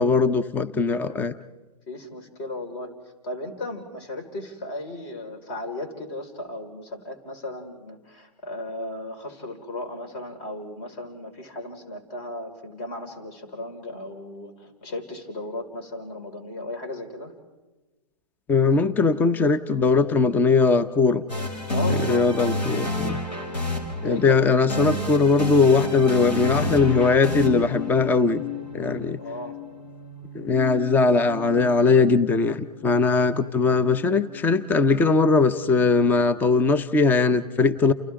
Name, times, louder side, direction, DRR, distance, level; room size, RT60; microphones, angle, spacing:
voice 1, 0.0-1.3 18.5-21.2 21.9-23.2 24.0-28.4 28.7-29.2 30.3-37.9, left 4 dB, 10° left, 13 dB, 0.6 m, -20 dB
voice 2, 1.9-2.9 3.2-17.3 21.7-22.3 24.0-24.5 29.2-29.6, left 1 dB, 40° left, 4 dB, 5.1 m, -35 dB
sound 1, 21.3-29.2, left 1 dB, 85° left, 6.4 m, -29 dB
sound 2, 25.0-37.0, left 9 dB, 55° left, 1.7 m, -38 dB
29.5 x 29.0 x 3.8 m, 1.2 s
hypercardioid pair, 130°, 21 cm